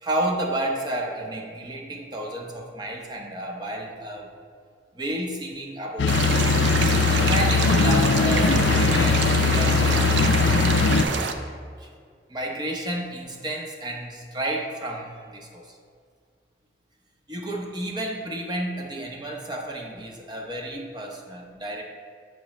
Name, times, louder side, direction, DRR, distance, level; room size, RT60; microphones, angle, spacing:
voice 1, 0.0-4.3 4.9-6.5 7.2-10.7 11.8-11.9 12.3-15.8 17.3-21.8, right 1 dB, 25° right, 1 dB, 0.8 m, -31 dB
sound 1, 6.0-11.0, left 5 dB, 85° left, 0.4 m, -20 dB
sound 2, 6.1-11.3, right 4 dB, 80° right, 0.5 m, -26 dB
7.5 x 5.3 x 3.1 m, 2.1 s
head